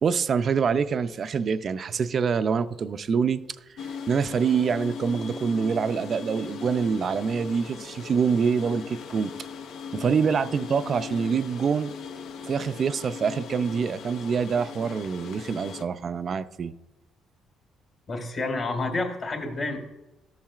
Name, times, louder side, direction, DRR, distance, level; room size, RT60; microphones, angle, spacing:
voice 1, 0.0-3.4 3.8-9.3 9.9-11.9 12.5-16.7, right 6 dB, 45° right, 12 dB, 0.4 m, -25 dB
sound 1, 3.8-15.8, left 6 dB, 70° left, 0.6 m, -39 dB
voice 2, 18.1-19.8, left 2 dB, 45° left, 3 dB, 2.1 m, -29 dB
13.5 x 7.3 x 2.4 m, 1.0 s
cardioid pair, 100°, 0 cm